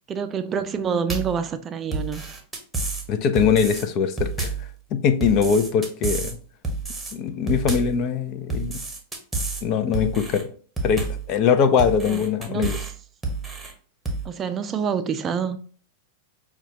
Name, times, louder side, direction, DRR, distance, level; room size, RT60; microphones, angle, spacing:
voice 1, 0.1-2.2 12.1-12.9 14.2-15.6, right 6 dB, 25° right, 0.4 m, -27 dB
sound 1, 1.1-1.4 1.9-3.1 3.4-3.8 4.2-4.7 5.2-6.3 6.6-7.1 7.5-8.0 8.5-9.6 9.9-10.4 10.8-11.3 11.8-12.9 13.2-13.7 14.1-14.3, right 3 dB, 10° right, 1.0 m, -29 dB
voice 2, 3.1-4.5 4.9-6.4 7.1-8.8 9.6-10.5 10.8-12.8, left 6 dB, 45° left, 0.5 m, -22 dB
5.8 x 2.3 x 2.8 m
hypercardioid pair, 110°, 0 cm